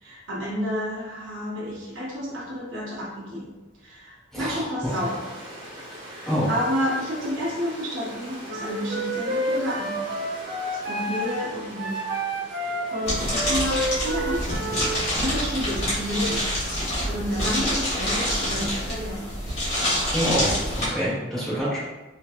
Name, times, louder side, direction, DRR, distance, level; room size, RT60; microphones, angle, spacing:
voice 1, 0.0-5.6 6.1-10.1 10.7-12.0 12.5-14.8 15.2-16.5 16.8-19.4, equal, 85° right, -4 dB, 0.9 m, -30 dB
voice 2, 4.3-4.7 6.3-6.5 20.1-20.5 20.9-21.8, equal, ahead, -10 dB, 1.1 m, -26 dB
Stream, 4.8-15.2, equal, 25° right, 0.9 m, -42 dB
Wind instrument woodwind instrument, 8.5-15.0, right 1 dB, 55° right, 0.5 m, -30 dB
sound 1, 13.1-20.9, equal, 30° left, 1.2 m, -26 dB
3.0 x 2.8 x 2.4 m, 1.1 s
head